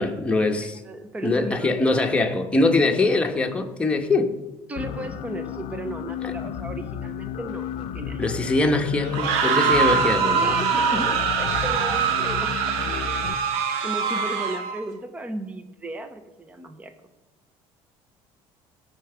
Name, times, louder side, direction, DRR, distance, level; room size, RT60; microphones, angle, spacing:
voice 1, 0.0-0.8 1.2-4.3 6.2-6.3 8.2-10.6, left 2 dB, 10° left, 3 dB, 1.2 m, -22 dB
voice 2, 0.8-1.7 2.8-3.1 4.7-8.2 10.4-12.8 13.8-16.9, right 1 dB, 10° right, 8 dB, 0.8 m, -35 dB
sound 1, 4.8-13.3, left 9 dB, 65° left, 0.7 m, -33 dB
sound 2, 9.0-14.8, right 6 dB, 80° right, 1.4 m, -23 dB
17.0 x 5.9 x 6.9 m, 1.1 s
cardioid pair, 155°, 11 cm